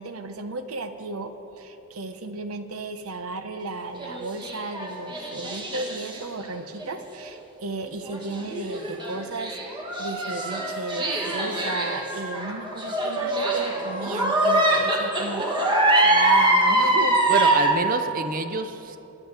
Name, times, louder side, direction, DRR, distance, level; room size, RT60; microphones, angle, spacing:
voice 1, 0.0-17.7, right 2 dB, 75° right, 8 dB, 0.8 m, -34 dB
sound 1, 4.0-6.4 6.8-6.9 8.0-17.7, right 1 dB, 20° right, 1.2 m, -23 dB
voice 2, 17.3-19.0, right 3 dB, 40° right, 9 dB, 0.6 m, -27 dB
19.5 x 10.5 x 3.4 m, 3.0 s
head